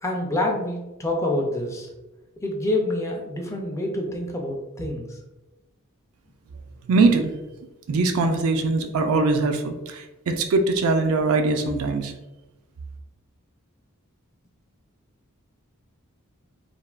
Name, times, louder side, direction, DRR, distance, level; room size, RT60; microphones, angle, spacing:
voice 1, 0.0-1.9 2.4-5.2, left 1 dB, 15° left, 0 dB, 0.4 m, -27 dB
voice 2, 6.8-7.3 7.9-12.1, right 3 dB, 70° right, 6 dB, 0.3 m, -22 dB
3.3 x 2.2 x 2.3 m, 1.0 s
head